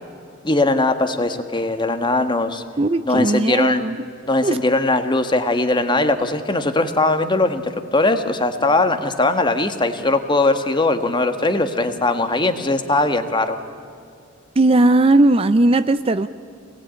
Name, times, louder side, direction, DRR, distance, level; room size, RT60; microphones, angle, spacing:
voice 1, 0.4-2.6 3.1-3.8 4.3-13.6, left 2 dB, 25° left, 8 dB, 1.4 m, -20 dB
voice 2, 2.8-4.0 4.4-4.6 14.6-16.3, right 2 dB, 30° right, 12 dB, 0.5 m, -17 dB
25.5 x 19.0 x 8.9 m, 2.5 s
head